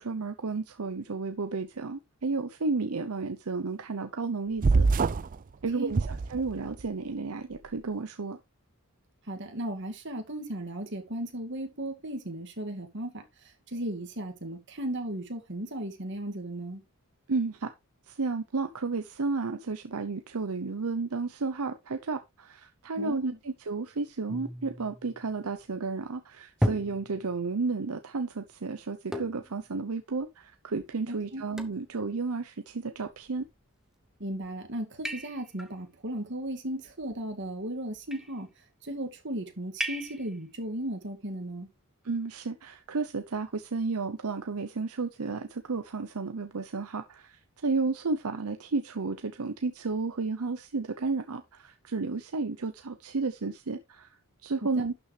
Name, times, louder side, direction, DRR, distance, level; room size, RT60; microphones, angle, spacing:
voice 1, 0.0-4.9 5.6-8.4 17.3-17.7 18.1-33.4 42.0-54.1 54.4-54.9, right 4 dB, 80° right, 0.8 m, -32 dB
sound 1, 4.6-5.4 5.9-6.8, right 4 dB, 40° right, 0.4 m, -25 dB
voice 2, 9.3-16.8 23.0-23.4 31.1-31.4 34.2-38.5 38.8-41.7 54.7-54.9, right 1 dB, 55° right, 2.3 m, -36 dB
sound 2, 24.3-25.7 26.6-27.6 29.1-29.6 30.2-30.3 30.8-30.9 31.6-31.9 33.0-33.5 34.2-34.5 35.1-35.7 36.9-37.5 37.9-38.4 39.8-40.4, equal, ahead, 1.0 m, -35 dB
11.5 x 6.9 x 3.3 m
head